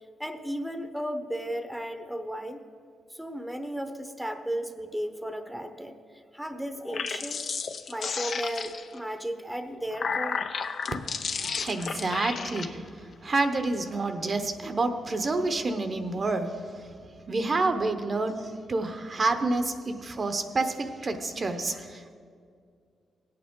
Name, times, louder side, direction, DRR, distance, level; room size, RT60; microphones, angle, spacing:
voice 1, 0.2-2.6 3.1-6.0 6.3-7.5 7.9-10.4, equal, 5° right, 7 dB, 0.8 m, -34 dB
sound 1, 6.8-9.0 9.7-12.7, left 5 dB, 60° left, 0.6 m, -33 dB
voice 2, 11.4-16.9 17.3-22.1, right 3 dB, 40° right, 7 dB, 0.8 m, -29 dB
17.5 x 8.7 x 3.7 m, 2.2 s
cardioid pair, 90°, 0 cm